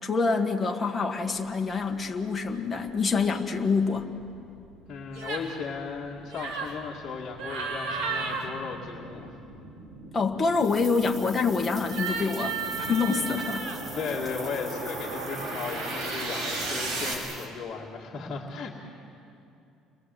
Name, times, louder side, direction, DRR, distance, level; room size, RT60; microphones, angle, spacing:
voice 1, 0.0-4.1 10.1-13.7, left 4 dB, 15° left, 1 dB, 1.8 m, -26 dB
sound 1, 2.4-2.5 3.0-17.1, right 2 dB, 55° right, 6.6 m, -38 dB
voice 2, 4.9-9.4 13.9-18.7, left 5 dB, 35° left, -4 dB, 2.3 m, -36 dB
sound 2, 5.1-5.5 6.3-6.7 7.4-8.5 11.8-13.8, right 5 dB, 70° right, 3.8 m, -33 dB
sound 3, 10.5-17.5, right 2 dB, 25° right, 2.4 m, -43 dB
30.0 x 22.5 x 7.9 m, 2.7 s
cardioid pair, 155°, 0 cm